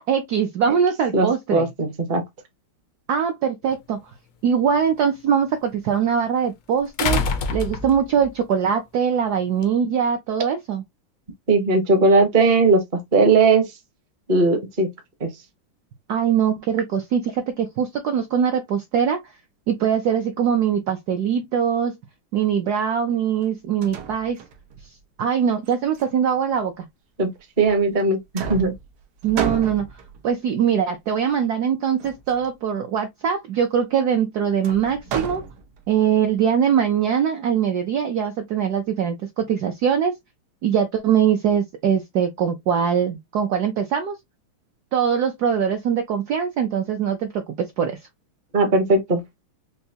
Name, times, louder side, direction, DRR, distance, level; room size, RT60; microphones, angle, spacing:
voice 1, 0.0-1.7 3.1-4.0 4.4-7.2 7.5-10.8 16.1-19.2 19.7-22.0 22.3-24.4 25.2-26.9 29.2-29.8 30.2-35.4 35.9-40.2 40.6-44.2 44.9-48.0, right 8 dB, 70° right, 1.0 m, -22 dB
voice 2, 1.1-2.2 11.5-13.6 14.3-14.9 15.2-15.3 27.2-27.3 27.6-28.7 48.5-49.2, right 3 dB, 35° right, 0.8 m, -18 dB
sound 1, 3.7-3.8 7.0-8.3 9.6-9.7, left 4 dB, 90° left, 0.7 m, -24 dB
sound 2, 23.4-23.5 23.8-24.9 25.7-26.7 27.6-28.1 28.4-30.3 32.0-32.5 34.6-36.0, right 7 dB, 85° right, 1.7 m, -32 dB
5.4 x 2.2 x 2.7 m
omnidirectional pair, 2.3 m